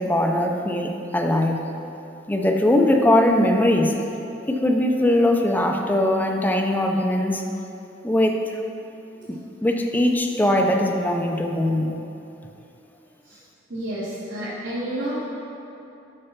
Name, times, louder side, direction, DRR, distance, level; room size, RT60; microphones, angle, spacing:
voice 1, 0.0-1.6 2.3-3.9 4.5-7.4 8.0-8.4 9.6-11.9, left 1 dB, 10° left, 2 dB, 0.5 m, -20 dB
voice 2, 13.7-15.3, right 1 dB, 70° right, -12 dB, 1.6 m, -30 dB
6.6 x 5.4 x 5.7 m, 2.8 s
head